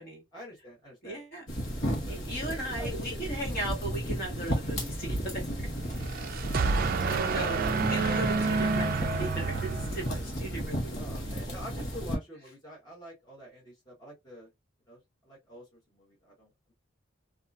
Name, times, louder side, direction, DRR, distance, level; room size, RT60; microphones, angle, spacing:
voice 1, 0.3-1.2 1.8-2.2 2.8-3.4 7.3-7.9 10.9-14.5 14.9-15.0 15.2-16.7, equal, 20° left, 1.0 m, -46 dB
voice 2, 1.0-1.5 2.1-5.7 6.6-7.6 7.8-11.1, right 1 dB, 50° left, 1.6 m, -37 dB
sound 1, 1.5-12.2, equal, 70° left, 1.1 m, -34 dB
sound 2, 5.9-10.4, right 4 dB, 45° right, 0.3 m, -29 dB
2.7 x 2.4 x 2.3 m
head